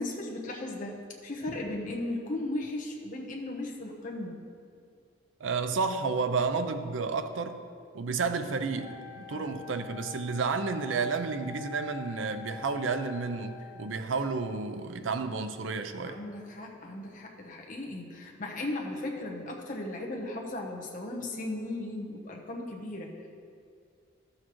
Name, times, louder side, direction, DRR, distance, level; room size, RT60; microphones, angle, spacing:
voice 1, 0.0-4.4 9.3-9.6 16.0-23.3, left 2 dB, 45° left, -1 dB, 1.0 m, -36 dB
voice 2, 5.4-7.6 7.9-16.2, right 4 dB, 85° right, 9 dB, 0.5 m, -31 dB
Wind instrument woodwind instrument, 8.7-14.2, left 9 dB, 45° right, 1.7 m, -46 dB
12.5 x 6.4 x 3.1 m, 2.2 s
head